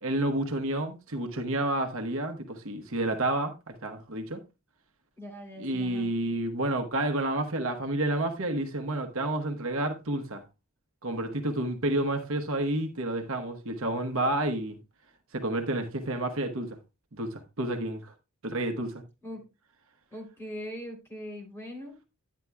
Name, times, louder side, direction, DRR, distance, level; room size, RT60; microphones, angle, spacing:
voice 1, 0.0-4.4 5.6-10.4 11.0-14.8 15.3-16.7 17.1-18.1 18.4-19.0, right 1 dB, 65° right, 1.1 m, -30 dB
voice 2, 5.2-6.1 19.2-19.5 20.1-22.1, left 1 dB, 10° left, 3.3 m, -41 dB
11.0 x 9.5 x 2.3 m
head